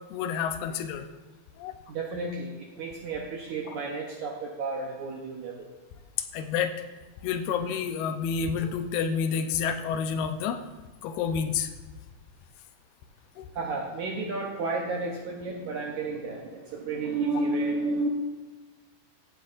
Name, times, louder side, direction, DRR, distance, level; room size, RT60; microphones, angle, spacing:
voice 1, 0.1-1.1 1.6-1.7 3.7-3.8 6.2-6.7 7.2-10.6 11.0-11.7 13.4-13.5, left 7 dB, 85° left, 7 dB, 2.6 m, -29 dB
voice 2, 1.9-5.7 13.5-18.1, right 3 dB, 75° right, -1 dB, 1.8 m, -32 dB
15.0 x 8.1 x 2.5 m, 1.3 s
omnidirectional pair, 4.5 m